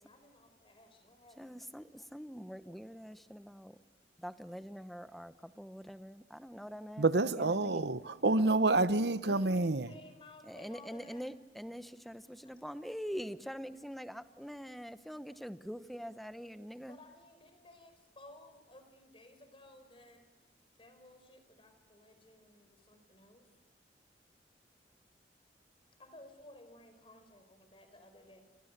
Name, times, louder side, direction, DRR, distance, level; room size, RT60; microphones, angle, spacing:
voice 1, 0.0-1.6 9.2-11.2 12.4-12.5 16.8-20.2 20.8-23.5 26.0-28.4, left 1 dB, 30° left, 4.8 m, -57 dB
voice 2, 1.4-3.8 4.2-7.9 8.4-8.5 10.4-17.0, equal, ahead, 1.0 m, -44 dB
voice 3, 7.0-9.9, right 2 dB, 70° right, 1.0 m, -28 dB
30.0 x 29.0 x 6.8 m
head